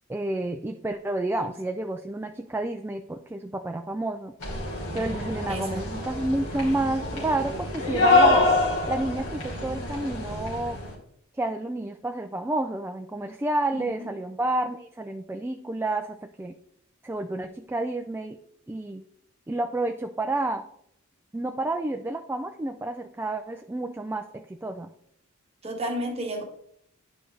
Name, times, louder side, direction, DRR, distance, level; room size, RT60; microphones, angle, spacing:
voice 1, 0.1-4.3 4.9-8.5 8.9-10.8 11.4-16.5 17.0-18.4 18.7-19.0 19.5-20.7 21.3-24.9, right 2 dB, 10° right, 5 dB, 0.3 m, -30 dB
sound 1, 4.4-10.9, left 2 dB, 85° left, 2.9 m, -25 dB
voice 2, 5.5-5.8 13.7-14.1 25.6-26.4, right 1 dB, 30° right, 1 dB, 1.6 m, -32 dB
10.0 x 5.1 x 3.3 m, 0.70 s
head